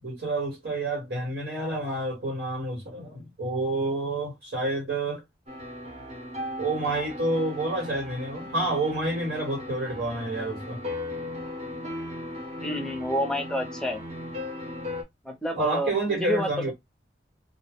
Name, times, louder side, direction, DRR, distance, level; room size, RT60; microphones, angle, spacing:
voice 1, 0.0-5.2 6.6-10.8 15.5-16.7, right 2 dB, 80° right, 1.2 m, -29 dB
sound 1, 5.5-15.0, left 1 dB, 35° right, 0.8 m, -37 dB
voice 2, 12.6-14.0 15.2-16.7, left 1 dB, 5° left, 0.5 m, -29 dB
2.2 x 2.0 x 3.4 m
head